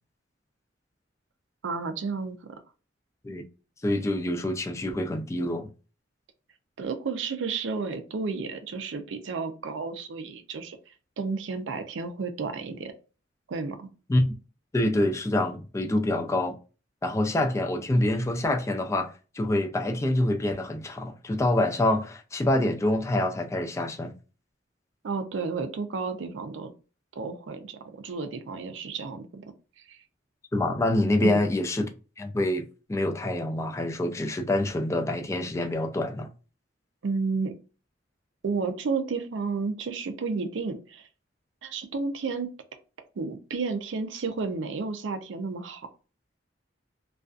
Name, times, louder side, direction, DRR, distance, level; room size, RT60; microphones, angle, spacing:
voice 1, 1.6-2.4 6.8-10.8 11.2-12.9 13.5-13.9 25.0-26.7 27.1-29.5 29.9-30.0 31.2-31.4 37.0-37.5 38.4-41.1 41.6-42.5 43.2-45.9, right 4 dB, 90° right, 0.5 m, -32 dB
voice 2, 3.8-5.7 14.1-14.4 14.7-16.6 17.0-24.1 30.5-31.9 32.2-36.3, left 1 dB, 15° left, 0.3 m, -26 dB
2.4 x 2.3 x 2.3 m
head